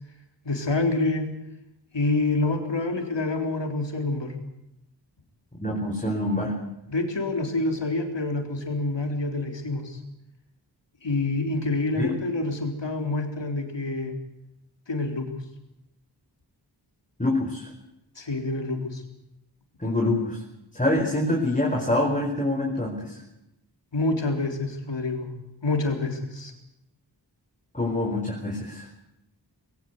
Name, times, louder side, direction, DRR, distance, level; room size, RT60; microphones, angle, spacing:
voice 1, 0.4-1.3 1.9-4.3 6.9-10.0 11.0-14.1 14.9-15.3 18.2-19.0 23.9-25.3 25.6-26.5, left 2 dB, 85° left, 4 dB, 4.0 m, -27 dB
voice 2, 5.6-6.6 12.0-12.1 17.2-17.7 19.8-20.4 20.7-23.2 27.7-28.9, left 1 dB, 20° left, -1 dB, 4.8 m, -25 dB
21.0 x 19.0 x 8.1 m, 0.87 s
wide cardioid pair, 70°, 42 cm